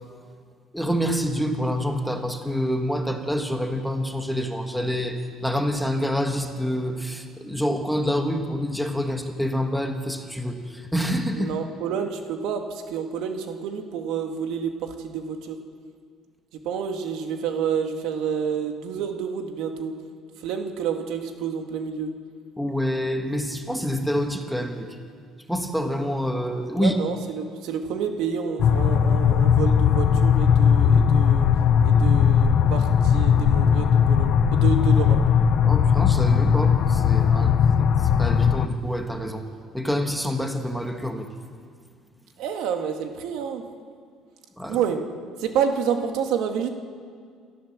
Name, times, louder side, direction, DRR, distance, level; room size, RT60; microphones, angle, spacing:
voice 1, 0.7-11.5 22.6-25.0 25.5-27.0 35.6-37.9 38.2-39.5 39.7-41.3 44.6-44.8, equal, ahead, 4 dB, 1.4 m, -27 dB
voice 2, 11.3-14.7 15.0-15.6 16.6-19.9 20.4-22.1 26.8-31.5 31.8-35.2 37.4-37.5 42.4-43.6 44.7-45.0 45.4-46.7, right 7 dB, 70° right, 5 dB, 2.1 m, -29 dB
sound 1, 28.6-38.7, left 7 dB, 45° left, 0.8 m, -18 dB
28.0 x 13.5 x 7.5 m, 2.1 s
cardioid pair, 150°, 0 cm